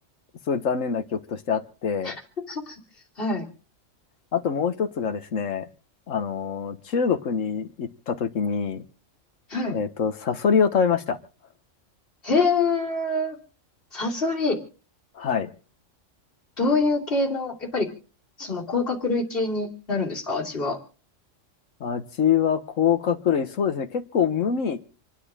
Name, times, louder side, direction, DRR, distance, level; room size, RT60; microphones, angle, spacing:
voice 1, 0.5-2.2 4.3-5.7 6.1-8.8 9.7-11.2 15.1-15.5 21.8-24.8, left 7 dB, 85° left, 10 dB, 1.6 m, -25 dB
voice 2, 12.2-13.4 13.9-14.6 16.6-17.9 18.4-20.8, left 3 dB, 45° left, 0 dB, 3.1 m, -25 dB
28.0 x 10.0 x 3.6 m, 0.38 s
omnidirectional pair, 1.3 m